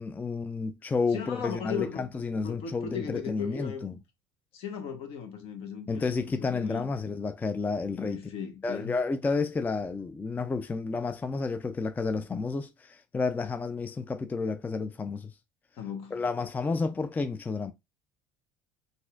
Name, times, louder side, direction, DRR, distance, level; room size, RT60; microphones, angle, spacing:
voice 1, 0.0-3.9 5.9-8.2 8.6-15.3 16.1-17.7, left 4 dB, 15° left, 0.3 m, -31 dB
voice 2, 1.1-4.0 4.5-6.1 6.4-6.9 8.0-8.9 15.8-16.2 16.8-16.9, left 7 dB, 60° left, 1.0 m, -37 dB
4.1 x 2.5 x 2.4 m
hypercardioid pair, 75°, 11 cm